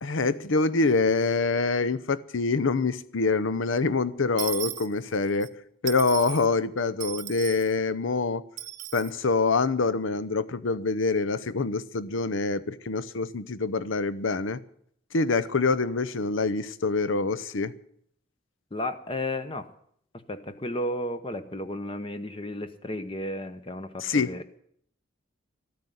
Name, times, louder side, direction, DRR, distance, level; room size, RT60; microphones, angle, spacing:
voice 1, 0.0-5.5 5.8-8.4 8.9-14.6 15.1-17.7 24.0-24.6, left 3 dB, 70° left, 0.7 m, -25 dB
Dishes pots and pans / Coin (dropping), 4.4-5.5 5.9-6.5 7.0-7.7 8.6-9.1, right 14 dB, 40° right, 0.9 m, -36 dB
voice 2, 18.7-19.7 20.3-24.4, left 1 dB, 25° left, 0.8 m, -33 dB
13.5 x 9.4 x 9.3 m
head